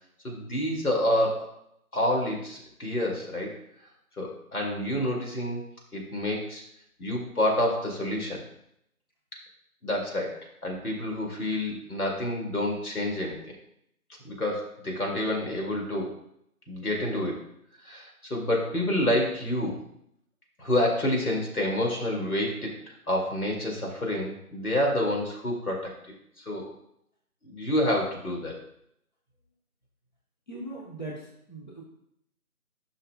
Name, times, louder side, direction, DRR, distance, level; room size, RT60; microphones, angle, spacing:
voice 1, 0.2-1.5 1.9-3.6 4.2-5.6 5.9-6.6 7.0-8.4 9.8-13.4 14.2-16.1 16.7-17.4 17.8-19.8 20.6-22.8 23.1-25.9 26.4-26.7 27.4-28.5, left 1 dB, 75° left, -1 dB, 2.3 m, -28 dB
voice 2, 30.5-31.8, right 2 dB, 30° left, -4 dB, 1.0 m, -39 dB
11.5 x 5.7 x 2.2 m, 0.73 s
figure-of-eight pair, 170°, 45 cm